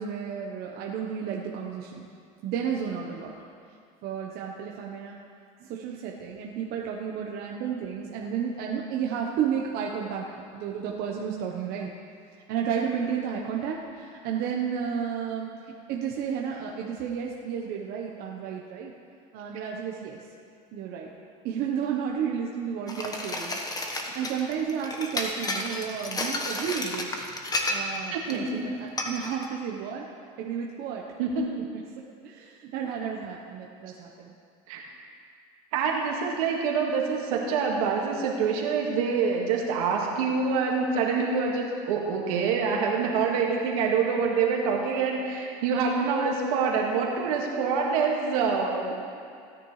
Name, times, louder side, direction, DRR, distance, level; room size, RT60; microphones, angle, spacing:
voice 1, 0.0-2.1 2.4-3.3 4.0-5.2 5.6-10.3 10.5-11.9 12.5-15.5 15.9-18.9 19.3-20.2 20.7-21.1 21.4-23.6 24.1-27.1 27.7-30.1 30.4-31.0 32.2-34.3, right 7 dB, 60° right, -1 dB, 1.2 m, -32 dB
sound 1, 22.9-28.0 28.3-28.5 29.0-29.5, left 2 dB, 20° left, 1.3 m, -32 dB
voice 2, 28.1-28.7 31.2-31.6 34.7-34.8 35.7-48.9, right 5 dB, 85° right, -1 dB, 2.0 m, -26 dB
17.5 x 9.8 x 3.3 m, 2.4 s
supercardioid pair, 105°, 18 cm